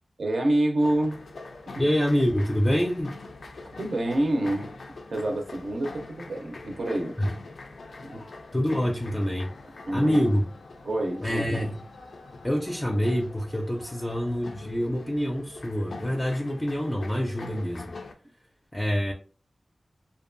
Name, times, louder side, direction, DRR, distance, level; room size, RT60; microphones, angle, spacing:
voice 1, 0.2-1.2 1.7-1.8 3.8-4.7 5.1-7.1 8.0-8.2 9.9-10.3 10.8-11.6, right 1 dB, 70° right, 0.5 m, -27 dB
sound 1, 0.8-18.1, left 3 dB, 85° left, 0.3 m, -43 dB
voice 2, 1.8-3.2 7.2-7.3 8.5-9.5 9.9-10.4 11.2-11.8 12.4-17.9 18.7-19.1, equal, 15° left, 0.4 m, -26 dB
2.6 x 2.2 x 2.5 m
wide cardioid pair, 75°, 0 cm